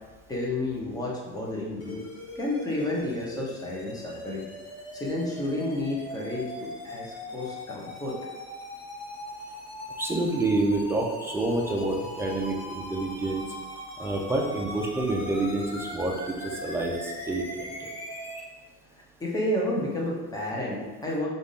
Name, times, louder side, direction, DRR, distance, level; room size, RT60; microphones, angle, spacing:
voice 1, 0.3-2.0 2.3-4.4 4.9-8.1 19.2-21.3, left 1 dB, 10° left, -4 dB, 1.0 m, -31 dB
sound 1, 1.8-18.4, left 1 dB, 55° left, 1.1 m, -40 dB
voice 2, 10.0-13.4 14.0-17.9, right 2 dB, 10° right, 0 dB, 0.5 m, -28 dB
3.4 x 2.6 x 4.1 m, 1.2 s
cardioid pair, 115°, 30 cm